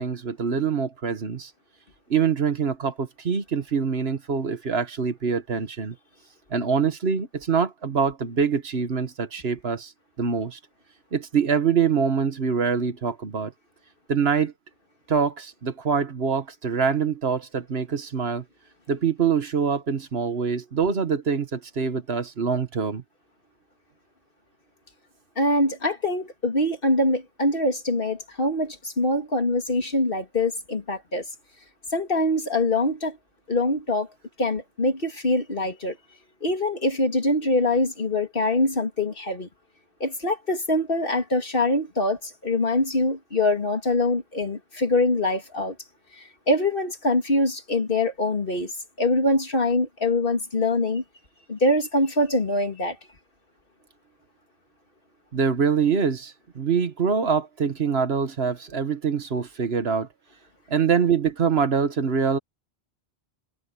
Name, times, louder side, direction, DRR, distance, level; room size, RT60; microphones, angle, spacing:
voice 1, 0.0-1.5 2.1-5.9 6.5-9.9 10.2-10.6 11.1-13.5 14.1-14.5 15.1-18.4 18.9-23.0 55.3-60.1 60.7-62.4, right 6 dB, 70° right, 1.5 m, -24 dB
voice 2, 25.4-31.2 31.9-33.2 33.5-34.1 34.4-36.0 36.4-39.5 40.0-45.7 46.2-48.7 49.0-51.0 51.5-53.0, left 2 dB, 55° left, 2.6 m, -24 dB
omnidirectional pair, 1.1 m